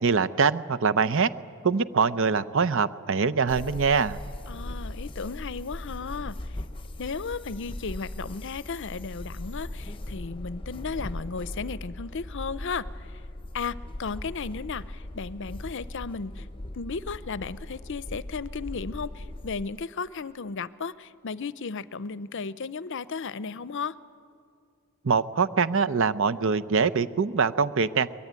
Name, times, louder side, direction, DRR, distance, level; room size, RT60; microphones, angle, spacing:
voice 1, 0.0-1.3 1.6-4.2 25.0-28.1, right 5 dB, 60° right, 13 dB, 0.7 m, -23 dB
sound 1, 3.5-19.6, left 1 dB, 25° left, 0.8 m, -39 dB
voice 2, 4.5-6.6 7.0-13.2 13.5-16.5 16.7-24.0, left 5 dB, 55° left, 17 dB, 0.6 m, -35 dB
23.5 x 21.5 x 9.5 m, 2.3 s
head